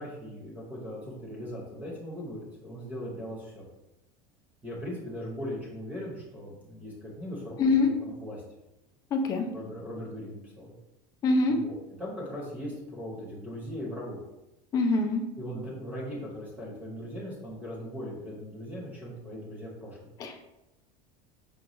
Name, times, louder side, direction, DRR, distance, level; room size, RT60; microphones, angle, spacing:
voice 1, 0.0-3.6 4.6-7.9 8.2-8.4 9.5-10.8 11.5-14.2 15.4-20.0, equal, 10° right, -4 dB, 0.7 m, -39 dB
voice 2, 7.6-7.9 9.1-9.5 11.2-11.6 14.7-15.2 20.2-20.3, left 3 dB, 20° left, 4 dB, 0.3 m, -24 dB
5.1 x 2.3 x 2.9 m, 0.96 s
cardioid pair, 175°, 18 cm